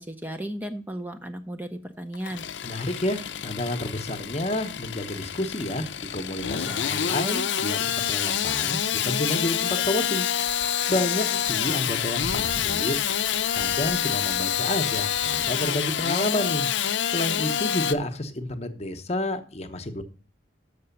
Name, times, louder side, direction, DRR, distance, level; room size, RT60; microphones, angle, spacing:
voice 1, 0.0-2.5, right 1 dB, 10° right, 6 dB, 0.5 m, -35 dB
Engine starting / Sawing, 2.1-17.9, left 9 dB, 75° left, 0.6 m, -27 dB
voice 2, 2.6-10.3 10.9-13.0 13.5-16.7 17.1-20.0, left 1 dB, 35° left, 8 dB, 0.8 m, -30 dB
sound 1, 10.2-16.0, right 1 dB, 40° right, 1.1 m, -45 dB
6.7 x 6.1 x 6.9 m, 0.39 s
head